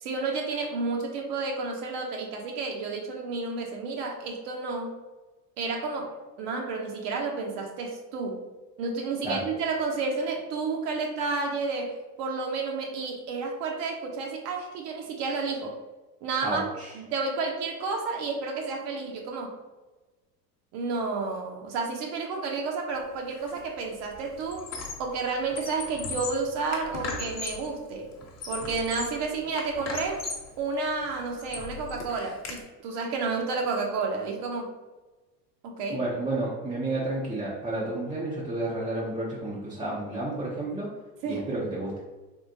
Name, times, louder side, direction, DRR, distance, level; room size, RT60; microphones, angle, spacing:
voice 1, 0.0-4.9 5.6-8.4 8.8-15.8 16.2-16.7 17.0-19.5 20.7-24.7 25.0-28.1 28.5-30.2 30.6-34.7 35.6-36.0 41.2-41.5, right 4 dB, 55° right, 2 dB, 0.7 m, -31 dB
voice 2, 16.4-16.9 35.9-40.9 41.3-42.0, right 2 dB, 10° right, -7 dB, 0.5 m, -31 dB
Squeak, 23.3-23.6 23.9-25.1 25.4-27.7 28.2-29.2 29.6-30.5 31.0-32.6, left 4 dB, 30° left, 0.8 m, -37 dB
3.6 x 2.4 x 2.6 m, 1.2 s
hypercardioid pair, 85°, 50 cm